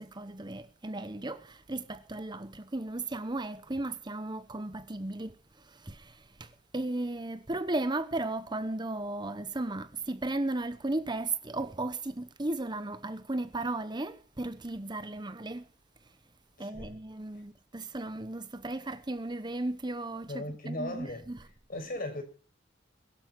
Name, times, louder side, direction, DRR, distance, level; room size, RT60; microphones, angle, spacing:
voice 1, 0.0-15.7 16.0-16.2 16.6-21.4, right 2 dB, 20° right, 0.9 m, -35 dB
voice 2, 16.6-17.0 20.3-21.3 21.7-22.2, left 1 dB, 45° left, 6.2 m, -37 dB
22.0 x 12.5 x 4.6 m
head